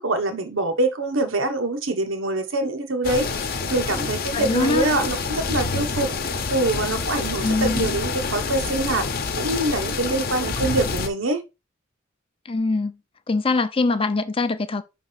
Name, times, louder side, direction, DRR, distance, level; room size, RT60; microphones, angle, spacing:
voice 1, 0.0-6.1 6.5-9.1 9.3-11.4, right 2 dB, 85° right, 1.2 m, -24 dB
sound 1, 3.0-11.1, left 4 dB, 50° left, 0.8 m, -27 dB
voice 2, 4.3-4.9 7.4-8.0 12.5-13.0 13.3-14.8, left 3 dB, 30° left, 0.6 m, -23 dB
5.3 x 3.5 x 5.8 m
head